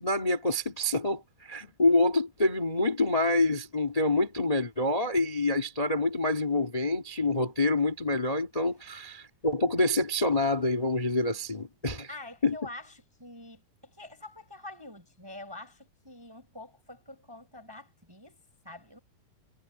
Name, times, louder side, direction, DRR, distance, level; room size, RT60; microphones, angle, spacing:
voice 1, 0.0-12.1 12.4-12.6, left 2 dB, 50° left, 0.4 m, -27 dB
voice 2, 12.1-19.0, left 2 dB, 5° right, 5.6 m, -46 dB
omnidirectional pair, 4.2 m